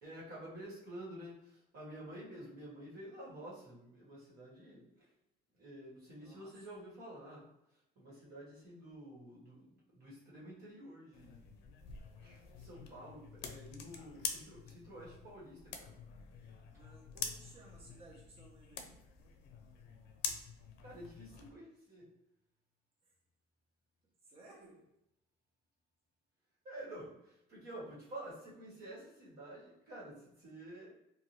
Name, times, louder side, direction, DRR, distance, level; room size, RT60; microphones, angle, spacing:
voice 1, 0.0-5.1 5.6-7.5 7.9-11.4 12.2-16.0 20.8-22.1 26.6-30.9, right 1 dB, 65° right, -6 dB, 1.5 m, -50 dB
voice 2, 6.1-6.5 16.7-19.0 24.3-24.8, right 2 dB, 35° right, -3 dB, 0.9 m, -58 dB
sound 1, 11.1-21.5, left 6 dB, 85° left, 0.4 m, -46 dB
2.7 x 2.5 x 3.1 m, 0.85 s
cardioid pair, 110°, 17 cm